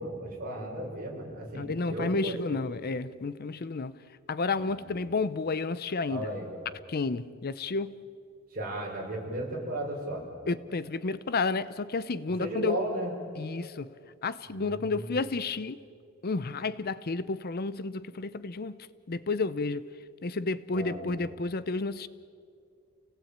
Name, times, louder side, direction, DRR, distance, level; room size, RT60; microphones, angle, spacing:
voice 1, 0.0-2.6 4.6-4.7 6.1-6.5 8.5-10.2 12.4-13.1 14.5-15.2 20.7-21.1, right 1 dB, 40° right, 5.8 m, -35 dB
voice 2, 1.5-4.0 4.3-6.3 6.9-8.0 10.5-12.8 13.4-13.9 14.2-15.8 16.2-19.9 20.2-22.1, left 3 dB, 45° left, 0.6 m, -31 dB
29.0 x 18.5 x 8.8 m
head